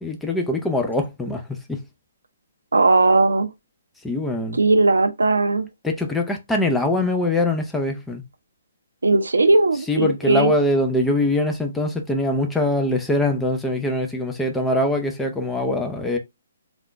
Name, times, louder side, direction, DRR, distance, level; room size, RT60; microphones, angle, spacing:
voice 1, 0.0-1.8 4.0-4.6 5.8-8.2 9.9-16.2, left 1 dB, 5° left, 0.6 m, -23 dB
voice 2, 2.7-3.5 4.5-5.7 9.0-10.5, right 3 dB, 75° right, 0.6 m, -18 dB
3.5 x 2.5 x 3.3 m
figure-of-eight pair, 135°, 0 cm